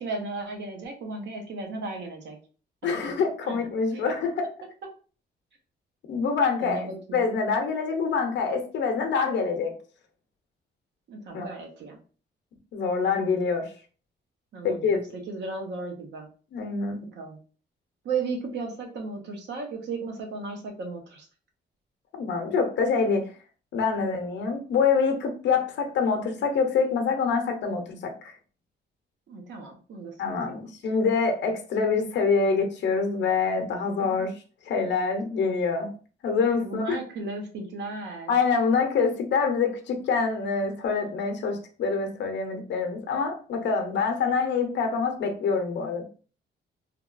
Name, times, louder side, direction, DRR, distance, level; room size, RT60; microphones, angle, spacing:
voice 1, 0.0-2.4 2.8-3.0 3.4-3.6 3.9-4.1 6.6-7.3 11.1-12.0 14.5-16.3 17.1-17.4 18.0-21.3 23.9-24.0 29.3-30.6 34.0-34.2 36.6-38.3, right 3 dB, 75° right, 3 dB, 0.8 m, -35 dB
voice 2, 2.8-4.5 6.1-9.7 11.3-11.5 12.7-13.7 14.6-15.0 16.5-17.0 22.2-23.3 23.7-28.3 30.2-34.3 34.7-35.9 36.2-37.0 38.3-46.0, left 5 dB, 75° left, 5 dB, 0.7 m, -25 dB
3.4 x 2.3 x 2.4 m, 0.39 s
wide cardioid pair, 175°, 19 cm